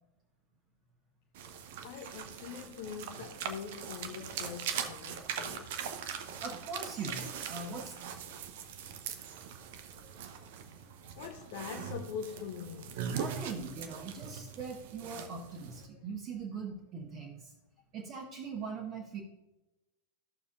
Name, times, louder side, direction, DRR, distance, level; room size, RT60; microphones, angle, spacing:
sound 1, 1.3-15.9, right 7 dB, 55° right, 0.9 m, -41 dB
voice 1, 1.8-5.8 10.0-10.1 11.0-13.1, left 7 dB, 50° left, 0.9 m, -43 dB
voice 2, 6.1-7.9 13.1-17.5 17.9-19.2, right 4 dB, 35° right, 1.3 m, -41 dB
14.5 x 6.8 x 2.5 m
figure-of-eight pair, 90°, 0 cm